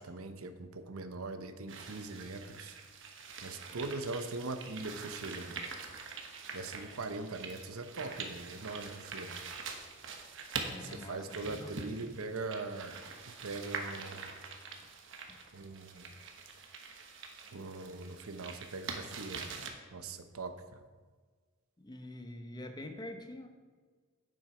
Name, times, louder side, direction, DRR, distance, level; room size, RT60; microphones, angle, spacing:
voice 1, 0.0-2.8 3.4-5.6 6.5-9.5 10.8-13.0 13.3-14.3 15.5-16.1 17.5-20.8, right 3 dB, 85° right, 9 dB, 0.8 m, -41 dB
sound 1, 1.7-19.7, right 5 dB, 60° right, 1.1 m, -45 dB
voice 2, 10.7-11.8 15.3-15.4 21.8-23.5, left 1 dB, 20° left, 6 dB, 0.7 m, -45 dB
9.2 x 7.2 x 4.9 m, 1.5 s
head